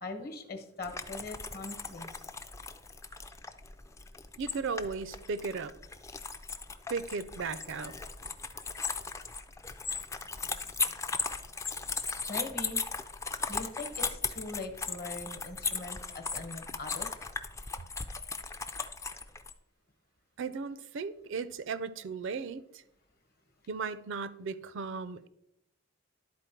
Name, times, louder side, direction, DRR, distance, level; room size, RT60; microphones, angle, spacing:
voice 1, 0.0-2.1 10.4-10.9 12.3-12.8 13.5-17.1, left 3 dB, 45° left, 7 dB, 1.1 m, -41 dB
sound 1, 0.8-19.5, left 4 dB, 15° left, 0.3 m, -37 dB
voice 2, 4.4-5.7 6.9-7.9 20.4-22.8 23.7-25.3, right 5 dB, 60° right, 16 dB, 0.4 m, -36 dB
11.5 x 4.3 x 4.5 m, 0.82 s
head